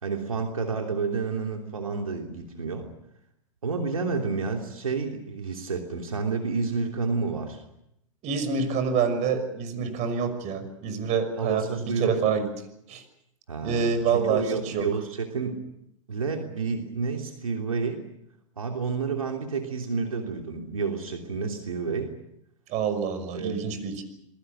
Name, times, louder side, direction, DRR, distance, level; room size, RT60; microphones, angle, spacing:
voice 1, 0.0-2.9 3.6-7.6 11.4-12.1 13.5-15.6 16.1-18.0 18.6-22.1 23.3-23.7, right 4 dB, 85° right, 3 dB, 3.1 m, -30 dB
voice 2, 8.2-12.5 12.9-13.0 13.6-14.9 22.7-24.0, right 6 dB, 40° right, 10 dB, 6.0 m, -27 dB
28.0 x 22.0 x 6.9 m, 0.78 s
hypercardioid pair, 100°, 17 cm